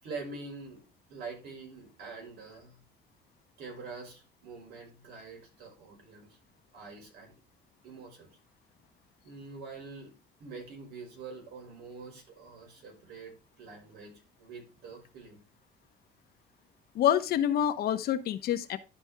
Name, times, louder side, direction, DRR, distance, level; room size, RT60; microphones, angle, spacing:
voice 1, 0.0-2.8 3.6-6.4 6.7-7.3 7.8-8.4 9.2-10.1 10.4-15.4, right 4 dB, 75° right, 1 dB, 5.4 m, -45 dB
voice 2, 16.9-18.8, left 10 dB, 65° left, 9 dB, 1.2 m, -27 dB
12.0 x 5.3 x 3.5 m, 0.29 s
cardioid pair, 110°, 17 cm